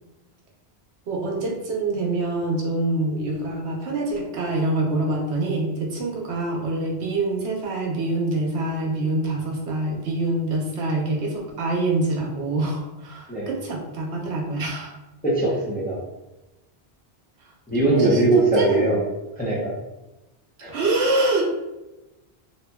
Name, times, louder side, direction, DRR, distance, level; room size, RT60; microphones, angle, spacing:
voice 1, 1.1-15.0 18.0-19.0 20.7-21.5, right 2 dB, 85° right, -1 dB, 1.0 m, -25 dB
voice 2, 15.2-16.0 17.7-19.0 19.4-19.7 20.6-20.7, right 2 dB, 10° left, -6 dB, 0.5 m, -20 dB
2.8 x 2.5 x 2.2 m, 1.0 s
omnidirectional pair, 1.1 m